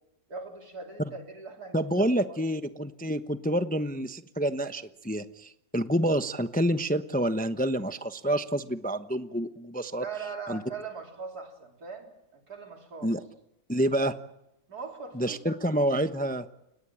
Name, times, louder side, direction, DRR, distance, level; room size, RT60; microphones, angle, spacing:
voice 1, 0.3-2.4 10.0-13.1 14.7-15.5, right 5 dB, 85° right, 3 dB, 4.1 m, -40 dB
voice 2, 1.7-10.0 10.5-10.6 13.0-13.2 13.7-14.1 15.1-16.5, right 1 dB, 10° left, 10 dB, 0.7 m, -28 dB
30.0 x 18.0 x 8.8 m, 0.87 s
omnidirectional pair, 1.6 m